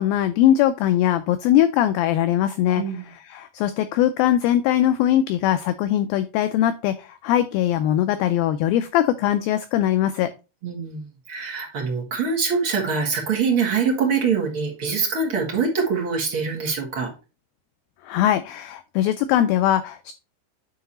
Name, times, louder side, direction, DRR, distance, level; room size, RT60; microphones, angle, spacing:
voice 1, 0.0-2.8 3.3-10.3 18.0-20.1, left 11 dB, 85° left, 11 dB, 2.1 m, -21 dB
voice 2, 10.6-17.1, right 5 dB, 40° right, -1 dB, 2.1 m, -24 dB
9.4 x 3.9 x 4.1 m, 0.30 s
omnidirectional pair, 4.6 m